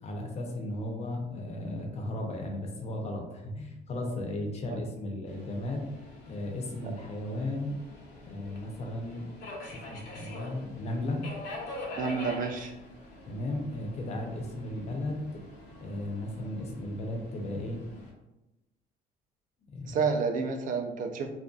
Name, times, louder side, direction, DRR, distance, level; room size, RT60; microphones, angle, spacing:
voice 1, 0.0-5.8 6.2-7.8 8.2-11.2 13.3-15.4 15.8-17.8 19.7-20.0, left 1 dB, 40° left, 2 dB, 0.6 m, -35 dB
Subway metro underground, 5.3-18.1, left 2 dB, 85° left, 0.7 m, -45 dB
voice 2, 12.0-12.7 19.9-21.3, right 5 dB, 50° right, 4 dB, 0.4 m, -30 dB
2.5 x 2.3 x 2.3 m, 0.98 s
cardioid pair, 110°, 17 cm